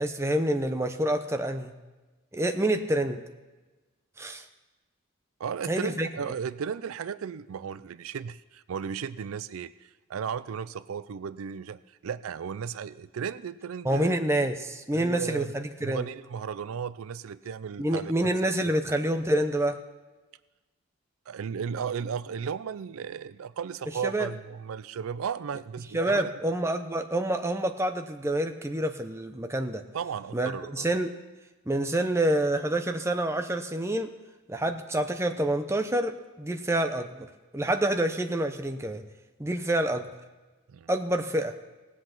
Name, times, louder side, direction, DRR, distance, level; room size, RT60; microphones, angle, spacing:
voice 1, 0.0-1.7 2.3-3.3 4.2-4.4 5.7-6.1 13.8-16.1 17.8-19.8 24.0-24.3 25.9-29.8 30.3-31.1 31.7-34.1 34.5-37.3 37.5-39.0 39.4-40.1 40.9-41.5, right 1 dB, 10° right, 6 dB, 0.7 m, -27 dB
voice 2, 5.4-14.2 14.9-15.5 15.8-18.1 18.4-18.5 21.3-26.3 29.9-30.9 40.7-40.9, right 7 dB, 75° right, 16 dB, 0.4 m, -35 dB
18.0 x 7.9 x 6.0 m, 1.2 s
head